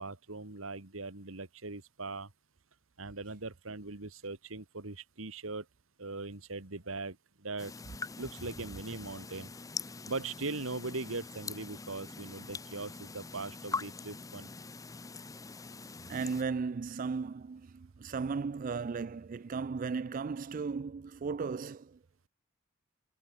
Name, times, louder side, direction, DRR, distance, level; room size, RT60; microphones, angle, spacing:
voice 1, 0.0-2.3 3.0-5.6 6.0-7.2 7.4-7.7 8.2-9.5 10.1-14.5, right 3 dB, 80° right, 2.1 m, -40 dB
sound 1, 7.6-16.4, left 4 dB, 15° left, 0.5 m, -43 dB
voice 2, 16.1-22.0, right 5 dB, 40° right, 0.4 m, -36 dB
head